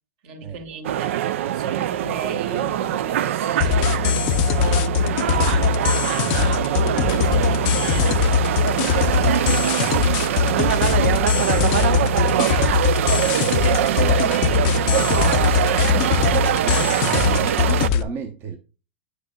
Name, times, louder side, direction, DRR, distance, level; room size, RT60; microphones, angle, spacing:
voice 1, 0.2-10.8 11.1-16.2, right 6 dB, 60° right, 1.6 m, -36 dB
sound 1, 0.8-17.9, right 11 dB, 75° right, 0.5 m, -22 dB
sound 2, 3.6-18.0, left 8 dB, 50° left, 0.5 m, -21 dB
voice 2, 14.0-14.4 14.9-15.3 15.9-18.6, right 6 dB, 30° right, 0.8 m, -33 dB
7.9 x 6.6 x 2.3 m
supercardioid pair, 135°, 7 cm